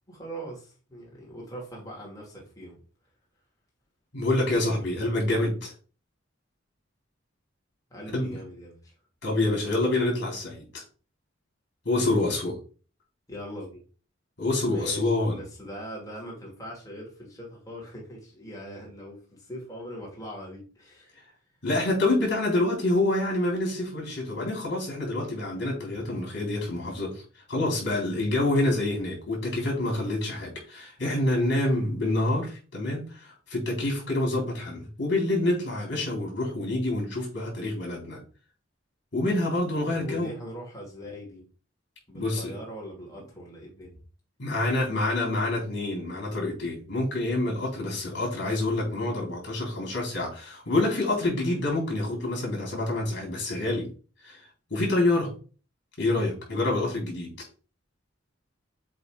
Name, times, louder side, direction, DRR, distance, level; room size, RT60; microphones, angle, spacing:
voice 1, 0.1-2.8 7.9-8.9 13.3-13.8 14.6-21.2 39.9-41.4 42.1-44.0, equal, 20° left, 2.4 m, -41 dB
voice 2, 4.1-5.7 8.1-8.4 9.2-10.8 11.9-12.6 14.4-15.4 21.6-27.2 27.5-38.2 39.1-40.3 42.1-42.5 44.4-53.9 54.2-54.4 54.7-55.3 56.0-57.5, left 2 dB, 60° left, 3.7 m, -27 dB
7.6 x 3.0 x 4.7 m
head